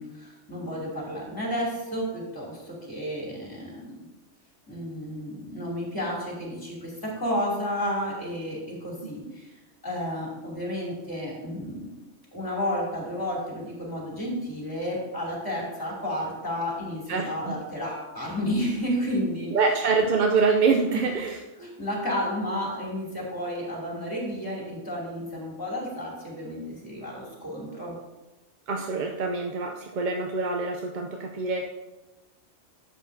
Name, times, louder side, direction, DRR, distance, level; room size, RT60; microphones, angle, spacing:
voice 1, 0.0-4.0 4.7-9.5 9.8-12.0 12.3-19.5 20.9-21.1 21.6-27.9, equal, 15° left, -4 dB, 2.6 m, -32 dB
voice 2, 17.1-17.5 19.5-21.4 28.7-31.6, right 4 dB, 50° right, 2 dB, 0.6 m, -25 dB
11.5 x 7.6 x 2.7 m, 1.1 s
omnidirectional pair, 1.2 m